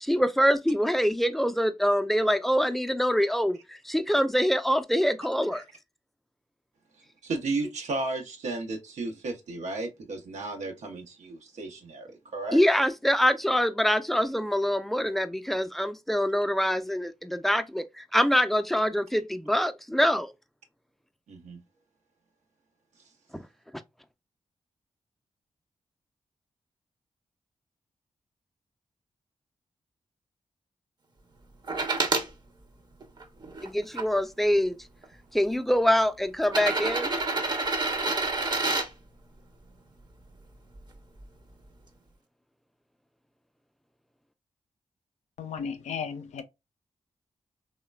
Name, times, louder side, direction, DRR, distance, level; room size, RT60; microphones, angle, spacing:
voice 1, 0.0-5.6 12.5-20.3 23.3-23.4 33.6-34.8 35.3-37.2, equal, ahead, 0.4 m, -25 dB
voice 2, 7.2-12.6 21.3-21.6, right 3 dB, 85° right, 0.7 m, -34 dB
sound 1, 31.7-32.3 33.0-34.0 35.0-35.1 36.4-38.9 40.8-40.9, right 3 dB, 40° right, 0.6 m, -28 dB
voice 3, 45.4-46.4, left 6 dB, 80° left, 0.4 m, -34 dB
3.0 x 2.1 x 2.2 m
cardioid pair, 50°, 12 cm